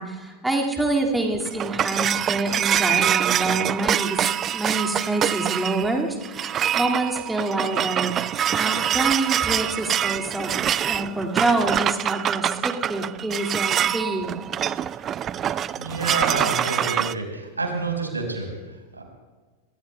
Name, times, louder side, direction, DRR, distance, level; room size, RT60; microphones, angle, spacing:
voice 1, 0.0-4.2 4.5-10.5 10.8-14.4, right 2 dB, 5° right, 0 dB, 2.1 m, -26 dB
sound 1, 1.2-17.1, right 10 dB, 25° right, 0.4 m, -25 dB
voice 2, 15.8-19.0, right 3 dB, 80° right, 2 dB, 4.5 m, -29 dB
26.0 x 24.5 x 2.2 m, 1.3 s
figure-of-eight pair, 90°, 0 cm